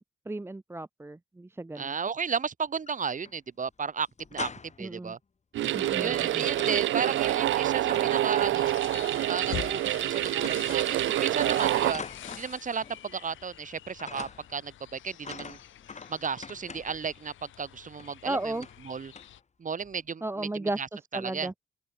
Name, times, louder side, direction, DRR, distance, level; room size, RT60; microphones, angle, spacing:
voice 1, 0.3-1.9 4.8-5.1 5.7-6.5 18.2-18.6 20.2-20.8 21.1-21.5, right 2 dB, 10° right, 1.0 m, -34 dB
voice 2, 1.7-5.2 6.0-8.7 9.3-12.0 12.3-15.6 16.1-19.1 19.6-20.9 21.1-21.5, right 6 dB, 40° right, 5.1 m, -34 dB
sound 1, 2.7-3.4 3.6-3.7 4.0-4.9 5.6-6.9 7.2-8.9 9.6-10.0 10.3-10.8 11.4-13.1 13.3-13.7 14.0-14.6 15.2-17.1 18.0-18.1 18.6-18.9 19.2-19.4 19.8-20.1, left 5 dB, 35° left, 4.5 m, -45 dB
sound 2, 5.5-11.9, right 14 dB, 75° right, 0.9 m, -27 dB
sound 3, 8.5-19.4, left 12 dB, 75° left, 4.3 m, -45 dB
cardioid pair, 90°, 20 cm